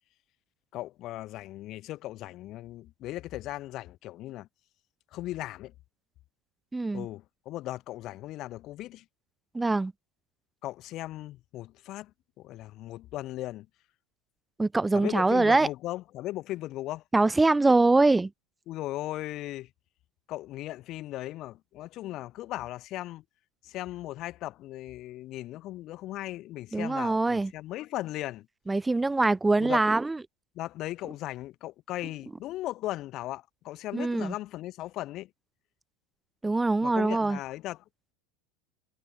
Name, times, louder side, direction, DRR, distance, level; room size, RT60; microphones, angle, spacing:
voice 1, 0.7-4.5 5.1-5.7 6.9-9.0 10.6-12.1 12.4-13.7 14.9-17.0 18.7-19.7 20.3-23.2 23.6-28.5 29.6-29.9 30.5-35.3 36.8-37.8, left 15 dB, 50° left, 0.7 m, -37 dB
voice 2, 6.7-7.1 9.5-9.9 14.6-15.7 17.1-18.3 26.7-27.5 28.7-30.2 33.9-34.3 36.4-37.4, right 3 dB, 10° right, 0.5 m, -23 dB
hypercardioid pair, 90°, 0 cm